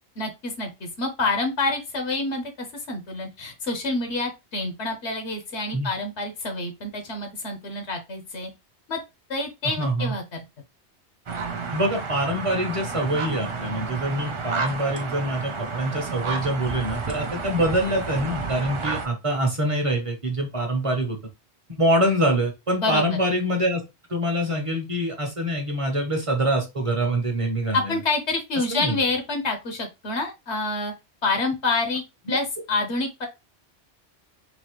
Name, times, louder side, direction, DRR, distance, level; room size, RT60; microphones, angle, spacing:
voice 1, 0.2-8.5 8.9-9.0 9.3-10.2 22.8-23.2 27.7-30.9 31.2-32.0 32.3-33.3, left 3 dB, 70° left, 4 dB, 1.2 m, -27 dB
voice 2, 9.6-10.1 11.7-21.2 21.7-23.8 24.1-28.0 28.7-29.0 32.3-32.4, right 1 dB, 30° right, 3 dB, 0.9 m, -25 dB
sound 1, 11.3-19.1, right 4 dB, 50° right, 0.3 m, -31 dB
4.1 x 2.7 x 3.0 m, 0.23 s
omnidirectional pair, 1.2 m